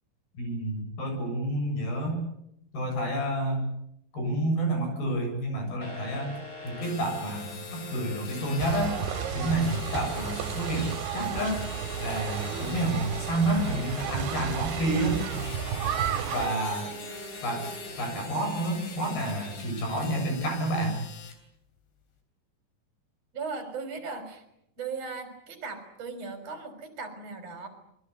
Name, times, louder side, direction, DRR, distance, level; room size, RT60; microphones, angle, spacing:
voice 1, 0.3-2.2 2.7-3.7 4.1-6.4 6.6-9.0 9.3-11.6 12.0-15.2 16.3-16.8 17.4-17.7 18.0-21.0, right 1 dB, 70° left, 4 dB, 9.0 m, -29 dB
sound 1, 5.8-19.5, equal, 20° left, 5.4 m, -43 dB
sound 2, 6.7-21.4, left 6 dB, 90° left, 5.7 m, -45 dB
sound 3, 8.6-16.5, right 9 dB, 80° right, 3.4 m, -33 dB
voice 2, 15.9-16.5 16.8-17.0 23.3-24.4 24.8-27.7, right 4 dB, 40° right, 6 dB, 4.7 m, -38 dB
27.0 x 22.0 x 8.2 m, 0.79 s
omnidirectional pair, 4.5 m